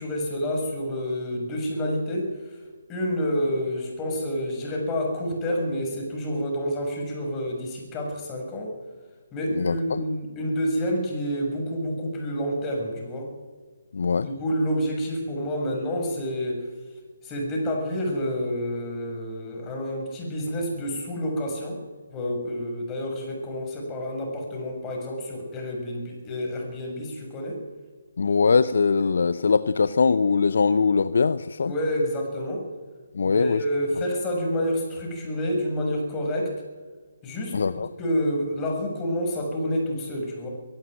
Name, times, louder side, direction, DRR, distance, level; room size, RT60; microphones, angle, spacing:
voice 1, 0.0-2.6 2.9-8.7 9.3-13.3 14.2-16.7 17.2-21.8 22.1-27.6 31.6-32.7 33.2-36.5 37.2-40.5, equal, 15° left, 0 dB, 6.9 m, -28 dB
voice 2, 9.6-10.0 13.9-14.3 28.2-31.7 33.2-33.6 37.5-37.9, left 5 dB, 60° left, 14 dB, 0.7 m, -21 dB
23.5 x 12.5 x 9.3 m, 1.4 s
figure-of-eight pair, 145°, 0 cm